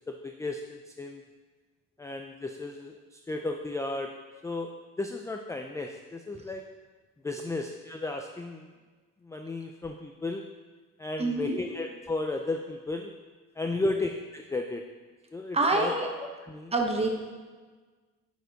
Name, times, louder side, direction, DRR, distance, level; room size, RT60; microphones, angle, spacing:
voice 1, 0.1-1.2 2.0-4.1 4.4-4.7 5.0-6.7 7.2-8.7 9.2-10.5 11.0-13.1 13.6-14.8 15.3-15.9 16.5-16.7, left 2 dB, 10° left, 3 dB, 0.3 m, -34 dB
voice 2, 11.2-11.6 15.5-16.1 16.7-17.1, right 2 dB, 20° right, 2 dB, 1.0 m, -26 dB
9.2 x 4.4 x 4.0 m, 1.4 s
cardioid pair, 115°, 33 cm